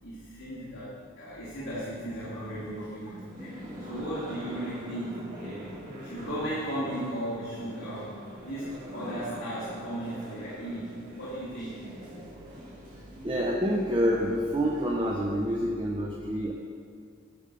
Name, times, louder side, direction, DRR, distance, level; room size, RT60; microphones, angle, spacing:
voice 1, 0.0-3.5 3.8-5.8 6.0-11.8, right 1 dB, 80° left, -9 dB, 1.9 m, -36 dB
sound 1, 1.7-15.6, equal, 40° right, 1.7 m, -44 dB
voice 2, 13.2-16.5, equal, 25° right, -1 dB, 0.6 m, -27 dB
8.9 x 5.3 x 5.2 m, 2.2 s
head